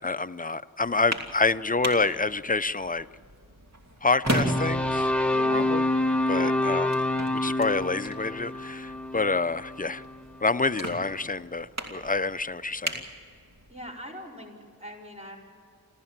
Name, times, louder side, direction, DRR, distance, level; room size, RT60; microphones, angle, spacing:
voice 1, 0.0-3.1 4.0-5.1 5.5-5.9 6.3-6.9 7.3-10.0 10.4-13.0, left 3 dB, 25° left, 13 dB, 0.6 m, -27 dB
sound 1, 0.8-13.9, right 1 dB, 50° right, 2.9 m, -38 dB
sound 2, 4.3-10.5, left 1 dB, 5° left, 1.0 m, -27 dB
voice 2, 5.3-5.9 6.4-6.6 13.7-15.4, left 1 dB, 20° right, -1 dB, 5.1 m, -41 dB
28.5 x 14.0 x 7.4 m, 2.3 s
wide cardioid pair, 60°, 34 cm